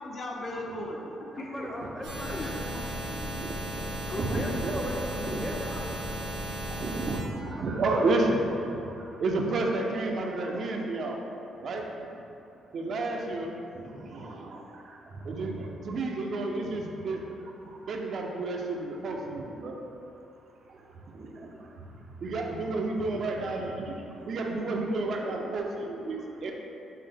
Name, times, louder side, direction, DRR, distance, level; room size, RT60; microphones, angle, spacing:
voice 1, 0.0-1.7 2.3-2.6 4.1-4.6 4.9-5.4 7.1-7.2 7.8-8.0 22.3-23.2, left 1 dB, 50° left, -2 dB, 0.6 m, -39 dB
voice 2, 1.3-3.5 4.0-6.1, equal, 10° left, -1 dB, 0.6 m, -39 dB
sound 1, 2.0-7.2, right 1 dB, 85° right, 1.2 m, -35 dB
voice 3, 3.4-3.9 4.2-4.8 5.2-5.4 6.7-11.2 11.6-11.8 12.7-17.2 17.7-19.8 20.7-20.8 21.1-21.9 22.2-26.5, right 2 dB, 60° right, 1 dB, 0.4 m, -31 dB
5.5 x 2.0 x 3.3 m, 2.8 s
cardioid pair, 90°, 0 cm